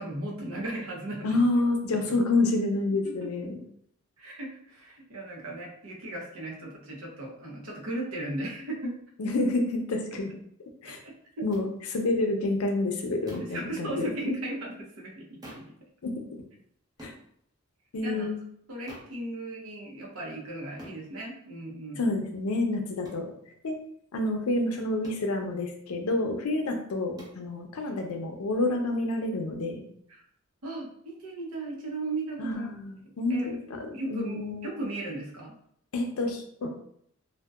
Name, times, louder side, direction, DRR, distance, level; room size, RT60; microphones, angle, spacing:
voice 1, 0.0-1.4 2.1-2.2 3.0-3.3 4.2-9.0 13.5-15.7 18.0-18.3 18.7-22.0 26.6-26.8 30.1-30.2 30.6-32.7 33.3-33.6 33.9-35.6, right 2 dB, 85° right, -2 dB, 0.7 m, -36 dB
voice 2, 1.2-3.6 9.2-10.3 10.8-11.0 11.4-14.4 16.0-16.1 17.0-17.1 17.9-18.4 22.0-23.3 23.6-23.8 24.1-29.8 32.4-33.6 34.1-34.7 35.9-36.7, left 2 dB, 85° left, 4 dB, 0.5 m, -28 dB
sound 1, 11.5-11.7 13.3-13.6 15.4-15.8 17.0-17.2 18.9-19.2 20.8-21.0 23.0-23.3 25.0-25.3 27.2-27.4, equal, 20° right, 0.5 m, -46 dB
2.6 x 2.1 x 2.3 m, 0.68 s
head